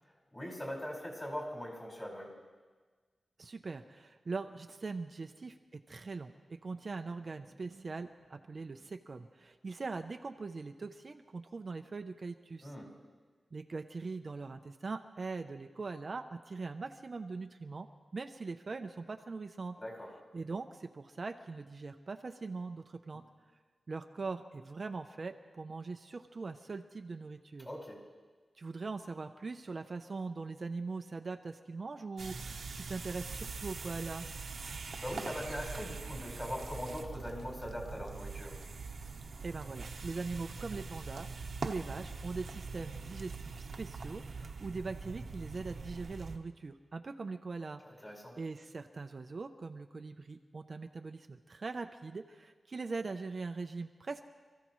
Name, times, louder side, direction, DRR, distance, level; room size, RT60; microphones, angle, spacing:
voice 1, 0.3-2.3 12.6-12.9 19.8-20.1 27.6-28.0 35.0-38.6 47.8-48.4, equal, 20° left, -3 dB, 4.8 m, -41 dB
voice 2, 3.4-12.7 13.5-17.9 18.1-19.8 20.3-23.2 23.9-27.7 28.6-34.3 39.4-41.3 41.6-47.8 48.4-54.2, right 4 dB, 45° right, 6 dB, 0.6 m, -41 dB
sound 1, 32.2-46.4, right 4 dB, 65° right, 1.0 m, -43 dB
27.5 x 15.0 x 3.1 m, 1.4 s
wide cardioid pair, 105°, 0 cm